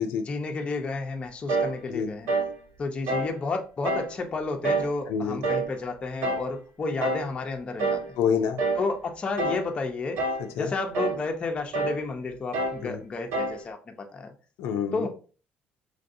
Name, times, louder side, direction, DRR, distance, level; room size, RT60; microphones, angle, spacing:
voice 1, 0.3-2.3 2.8-8.2 8.7-10.2 10.5-14.3 14.9-15.1, left 3 dB, 25° left, 0.5 m, -31 dB
sound 1, 1.5-1.8 2.3-2.6 3.1-3.4 3.8-4.1 4.6-5.0 5.4-5.7 6.2-6.5 7.0-7.3 7.8-8.1 8.6-8.9 9.4-9.7 10.2-10.5 10.9-11.2 11.7-12.0 12.5-12.8 13.3-13.6, right 3 dB, 85° right, 0.5 m, -27 dB
voice 2, 5.1-5.4 8.2-8.6 10.4-10.7 12.8-13.0 14.6-15.1, left 7 dB, 85° left, 0.4 m, -27 dB
3.2 x 2.6 x 2.6 m
cardioid pair, 140°, 4 cm